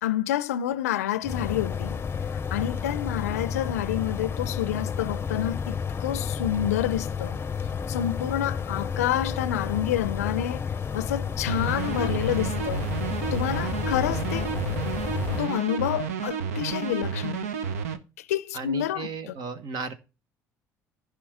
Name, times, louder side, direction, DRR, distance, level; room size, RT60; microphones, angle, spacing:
voice 1, 0.0-2.0 2.3-7.4 7.9-12.9 13.3-14.5 15.3-17.5 18.2-19.3, left 12 dB, 85° left, 0.4 m, -28 dB
sound 1, 1.2-15.5, left 6 dB, 30° left, 0.6 m, -31 dB
sound 2, 11.5-18.0, right 7 dB, 80° right, 0.8 m, -31 dB
voice 2, 18.5-19.9, right 4 dB, 60° right, 1.4 m, -35 dB
15.0 x 5.1 x 3.5 m
hypercardioid pair, 60°, 8 cm